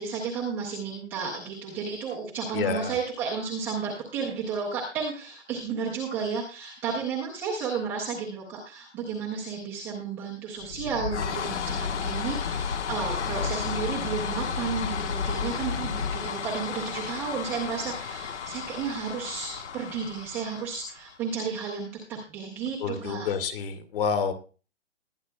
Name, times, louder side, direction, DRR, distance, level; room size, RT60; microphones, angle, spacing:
voice 1, 0.0-23.3, right 5 dB, 5° right, -6 dB, 0.5 m, -32 dB
voice 2, 2.5-3.0 22.8-24.3, left 6 dB, 50° left, 7 dB, 2.0 m, -28 dB
sound 1, 10.6-21.1, left 6 dB, 70° left, 1.3 m, -32 dB
20.0 x 10.5 x 2.2 m, 0.36 s
hypercardioid pair, 160°, 36 cm